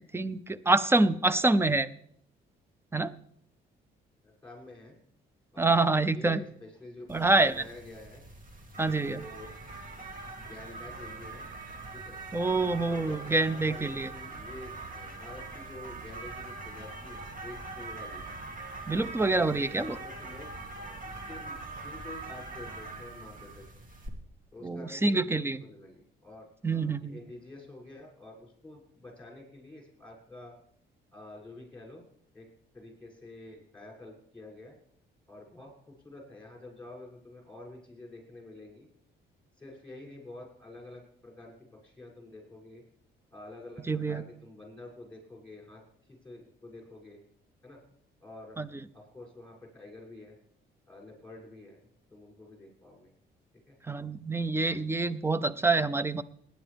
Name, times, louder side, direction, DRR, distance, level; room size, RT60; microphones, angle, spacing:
voice 1, 0.0-1.9 2.9-3.1 5.6-6.4 7.1-7.5 8.8-9.2 12.3-14.1 18.9-20.0 24.6-25.6 26.6-27.2 43.9-44.2 48.6-48.7 53.9-56.2, right 2 dB, 10° right, 16 dB, 0.6 m, -26 dB
voice 2, 4.2-5.0 5.5-8.2 9.0-9.5 10.3-11.5 11.9-12.2 12.6-18.2 18.9-19.1 19.5-23.6 24.5-30.5 31.1-32.0 32.3-32.5 32.7-34.7 35.3-38.9 39.6-42.8 43.3-45.8 46.1-47.2 47.6-47.8 48.2-50.3 50.9-51.8 52.1-53.1 53.7-53.8, left 2 dB, 5° left, -1 dB, 6.8 m, -48 dB
sound 1, 7.1-24.1, right 3 dB, 45° right, 2.3 m, -43 dB
18.5 x 10.5 x 3.5 m, 0.67 s
cardioid pair, 90°, 20 cm